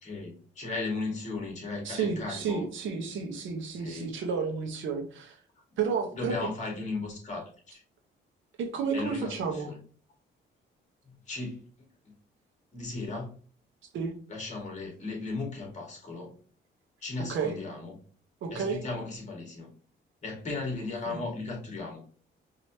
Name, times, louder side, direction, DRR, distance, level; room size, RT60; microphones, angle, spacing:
voice 1, 0.0-2.7 3.8-4.1 6.1-7.8 8.9-9.8 11.3-11.6 12.7-13.3 14.3-16.3 17.0-17.9 18.5-19.7 20.2-22.0, left 3 dB, 35° left, -1 dB, 2.2 m, -36 dB
voice 2, 1.8-5.4 5.8-6.5 8.6-9.7 13.9-14.2 17.3-17.6 18.4-18.8 21.0-21.2, right 5 dB, 75° right, 3 dB, 1.2 m, -31 dB
5.0 x 3.0 x 2.9 m, 0.43 s
cardioid pair, 90°, 20 cm